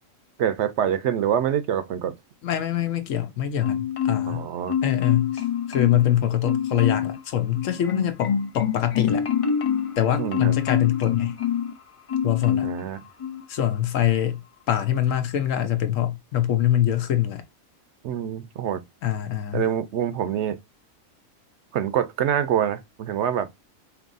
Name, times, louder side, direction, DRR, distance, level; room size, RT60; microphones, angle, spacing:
voice 1, 0.4-2.1 4.3-4.8 10.2-10.6 12.6-13.0 18.0-18.8 19.5-20.6 21.7-23.5, right 9 dB, 65° right, 0.8 m, -25 dB
voice 2, 2.4-4.5 4.8-5.4 5.7-9.3 10.0-11.4 12.2-12.7 13.5-14.4 14.7-17.4 19.0-19.6, left 11 dB, 75° left, 1.0 m, -24 dB
Marimba xylophone, 3.6-4.4 4.7-6.1 6.4-7.2 7.6-11.7 12.1-12.8 13.2-13.4, left 8 dB, 50° left, 0.4 m, -26 dB
4.5 x 2.9 x 2.5 m
omnidirectional pair, 1.4 m